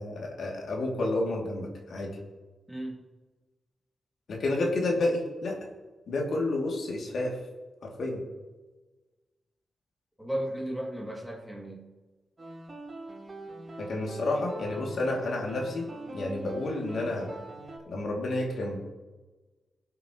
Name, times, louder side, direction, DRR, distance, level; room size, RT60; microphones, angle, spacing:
voice 1, 0.0-2.2 4.3-5.6 6.1-7.4 7.8-8.2 13.8-15.9 16.1-17.3 17.9-18.8, left 2 dB, 70° left, -1 dB, 2.6 m, -30 dB
voice 2, 2.7-3.0 10.2-11.8, right 1 dB, ahead, -2 dB, 2.5 m, -35 dB
sound 1, 12.4-17.8, right 2 dB, 30° right, 4.4 m, -43 dB
21.0 x 8.3 x 3.1 m, 1.3 s
wide cardioid pair, 110°, 0 cm